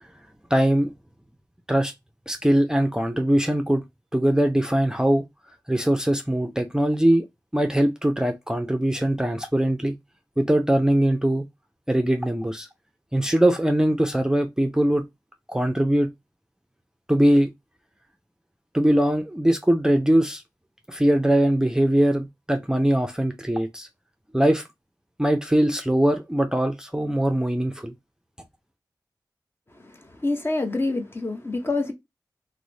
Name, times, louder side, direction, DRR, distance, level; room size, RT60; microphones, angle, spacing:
voice 1, 0.5-0.9 1.7-1.9 2.3-3.8 4.1-5.2 5.7-7.2 7.5-9.9 10.4-11.4 11.9-12.7 13.1-15.0 15.5-16.1 17.1-17.5 18.7-20.4 20.9-23.9 24.3-24.6 25.2-27.9, right 1 dB, 10° right, 0.5 m, -21 dB
voice 2, 29.8-31.9, left 2 dB, 30° left, 0.9 m, -27 dB
3.1 x 2.1 x 3.8 m
cardioid pair, 40°, 7 cm